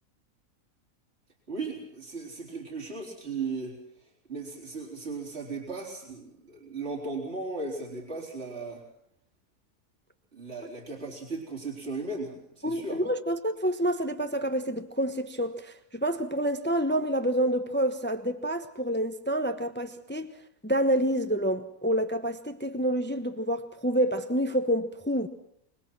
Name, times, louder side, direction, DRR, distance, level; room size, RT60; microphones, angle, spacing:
voice 1, 1.5-3.8 4.3-8.8 10.3-13.0, right 3 dB, 50° right, 4.3 m, -36 dB
voice 2, 12.6-20.3 20.6-25.3, equal, 10° left, 0.9 m, -28 dB
26.0 x 20.5 x 6.1 m
omnidirectional pair, 1.4 m